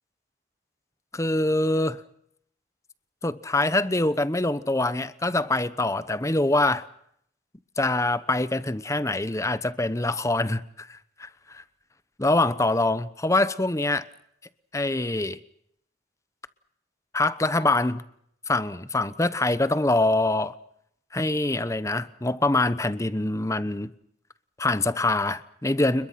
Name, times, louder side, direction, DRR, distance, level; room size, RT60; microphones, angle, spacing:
voice 1, 1.1-2.0 3.2-6.9 7.8-11.6 12.2-14.0 14.7-15.4 17.1-18.0 18.5-20.5 21.1-23.9 24.6-26.1, left 2 dB, 15° left, 1.0 m, -24 dB
29.0 x 22.0 x 5.9 m
head